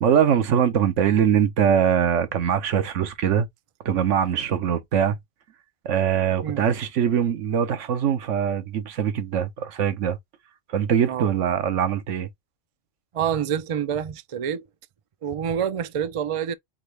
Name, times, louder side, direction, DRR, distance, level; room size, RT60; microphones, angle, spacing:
voice 1, 0.0-3.5 3.8-5.2 5.8-10.2 10.7-12.3, right 8 dB, 80° right, 1.1 m, -22 dB
voice 2, 13.1-14.7 15.2-16.5, right 8 dB, 60° right, 0.3 m, -27 dB
3.9 x 3.7 x 3.2 m
omnidirectional pair, 1.2 m